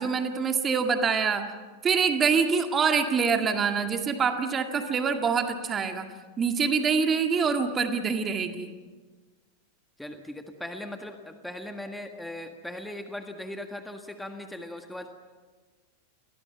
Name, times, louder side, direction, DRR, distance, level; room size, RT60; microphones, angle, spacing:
voice 1, 0.0-1.5 1.8-6.1 6.4-8.7, right 5 dB, 20° right, 6 dB, 2.0 m, -25 dB
voice 2, 10.0-15.1, left 1 dB, 5° left, 6 dB, 1.7 m, -39 dB
29.5 x 22.5 x 5.8 m, 1.4 s
figure-of-eight pair, 90°, 0 cm